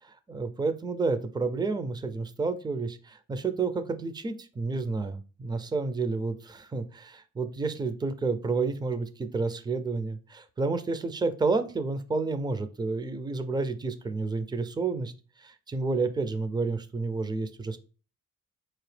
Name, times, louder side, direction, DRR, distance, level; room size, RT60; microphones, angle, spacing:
voice 1, 0.0-15.1 15.4-17.8, right 3 dB, 10° right, 10 dB, 0.4 m, -30 dB
4.2 x 2.9 x 3.2 m, 0.36 s
cardioid pair, 95°, 36 cm